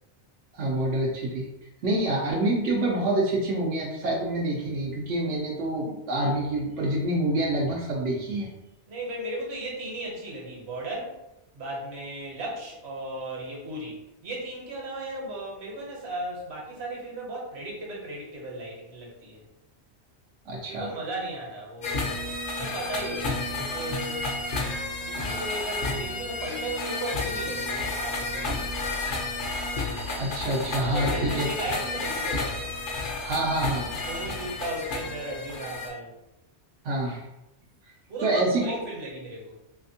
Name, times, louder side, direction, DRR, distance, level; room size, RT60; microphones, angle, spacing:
voice 1, 0.5-1.5 1.8-8.5 20.5-20.9 30.2-31.5 33.2-33.9 36.8-37.2 38.2-38.6, right 1 dB, 85° right, -3 dB, 1.0 m, -27 dB
voice 2, 8.9-11.2 11.5-19.4 20.7-22.2 22.6-24.3 25.0-28.7 30.9-32.7 34.1-36.1 38.1-39.5, right 1 dB, 65° right, -2 dB, 1.2 m, -36 dB
sound 1, 21.8-35.9, left 2 dB, 55° left, 0.7 m, -31 dB
3.3 x 2.8 x 2.7 m, 0.92 s
omnidirectional pair, 1.2 m